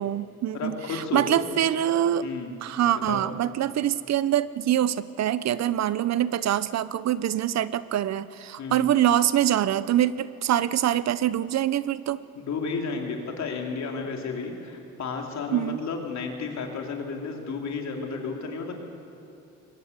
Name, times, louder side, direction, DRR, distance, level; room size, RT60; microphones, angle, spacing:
voice 1, 0.0-2.3 2.6-12.2 15.5-15.8, right 11 dB, 60° right, 16 dB, 0.7 m, -24 dB
voice 2, 0.5-1.4 2.2-2.6 3.1-3.2 8.6-8.9 12.4-18.8, left 4 dB, 65° left, 2 dB, 3.5 m, -32 dB
22.0 x 19.5 x 8.2 m, 2.7 s
cardioid pair, 90°, 30 cm